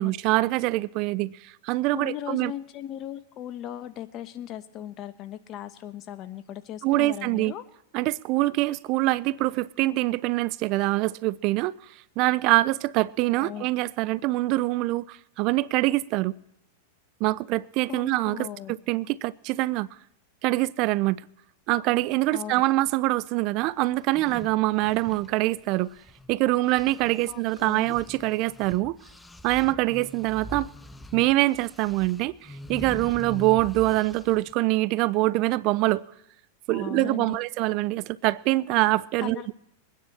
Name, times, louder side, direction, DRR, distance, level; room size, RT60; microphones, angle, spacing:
voice 1, 0.0-2.5 6.8-7.5 7.9-11.7 12.2-16.3 17.2-19.9 20.4-21.2 21.7-25.9 26.3-29.0 29.4-30.7 31.1-36.0 36.7-39.5, right 19 dB, 50° right, 0.4 m, -24 dB
voice 2, 1.9-7.6 13.3-13.7 17.9-18.7 22.3-22.6 27.3-27.9 36.7-37.4 39.2-39.5, left 11 dB, 40° left, 1.1 m, -38 dB
sound 1, 24.0-26.3 26.6-34.5, left 1 dB, 10° left, 0.6 m, -43 dB
22.5 x 9.7 x 4.2 m
hypercardioid pair, 110°, 0 cm